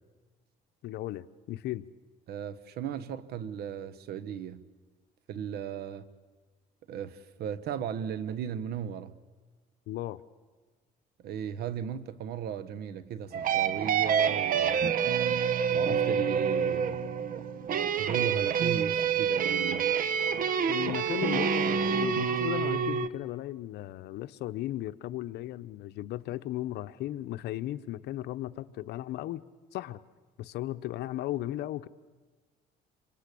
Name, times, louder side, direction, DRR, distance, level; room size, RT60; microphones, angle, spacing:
voice 1, 0.8-1.8 9.9-10.2 20.7-29.4 29.7-30.0 30.4-31.9, left 14 dB, 75° left, 0.9 m, -36 dB
voice 2, 2.3-4.7 5.3-6.1 6.9-9.1 11.2-14.9 15.7-16.9 18.0-19.9, right 8 dB, 70° right, 1.3 m, -36 dB
sound 1, 13.3-23.1, right 7 dB, 55° right, 1.2 m, -27 dB
27.0 x 25.5 x 8.5 m
cardioid pair, 110°, 17 cm